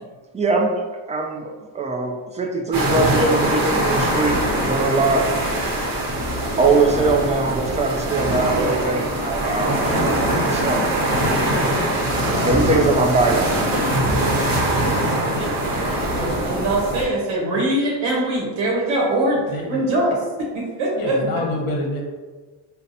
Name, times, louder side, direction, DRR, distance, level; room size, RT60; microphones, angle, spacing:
voice 1, 0.3-5.2 6.6-10.9 12.4-13.5 14.8-15.0, right 3 dB, 15° right, 2 dB, 0.3 m, -22 dB
sound 1, 2.7-17.0, right 1 dB, 45° right, 1.0 m, -22 dB
sound 2, 4.1-5.4 6.1-7.4 8.0-9.3 10.0-11.3 12.0-13.3 13.9-15.2 15.9-16.2, left 3 dB, 10° left, 1.1 m, -39 dB
voice 2, 15.0-15.6 16.1-19.4 19.7-21.3, right 1 dB, 70° right, -3 dB, 0.9 m, -23 dB
voice 3, 19.5-19.9 21.0-22.0, left 1 dB, 45° left, 0 dB, 1.0 m, -27 dB
3.8 x 2.2 x 2.6 m, 1.3 s
supercardioid pair, 80°, 50 cm